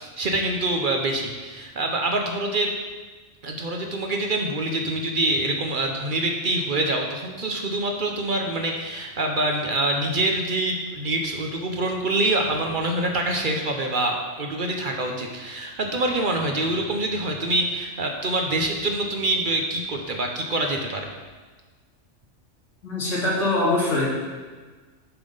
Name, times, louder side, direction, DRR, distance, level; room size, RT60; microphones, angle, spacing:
voice 1, 0.0-2.7 3.4-21.1, right 2 dB, 50° right, 2 dB, 0.8 m, -25 dB
voice 2, 22.8-24.1, left 2 dB, 85° left, -6 dB, 2.6 m, -23 dB
7.0 x 5.4 x 5.4 m, 1.4 s
omnidirectional pair, 1.3 m